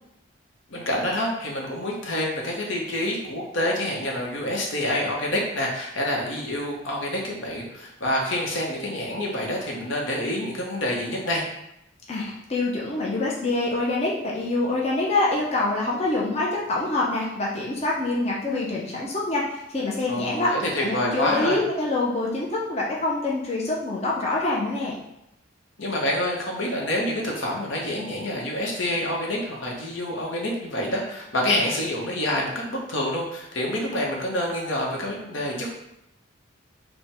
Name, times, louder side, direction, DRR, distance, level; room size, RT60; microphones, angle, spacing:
voice 1, 0.7-11.5 20.1-21.6 25.8-35.7, left 1 dB, 65° left, -1 dB, 0.9 m, -27 dB
voice 2, 12.1-20.5 20.8-24.9, left 2 dB, 30° left, -4 dB, 0.6 m, -25 dB
3.5 x 2.2 x 4.3 m, 0.84 s
head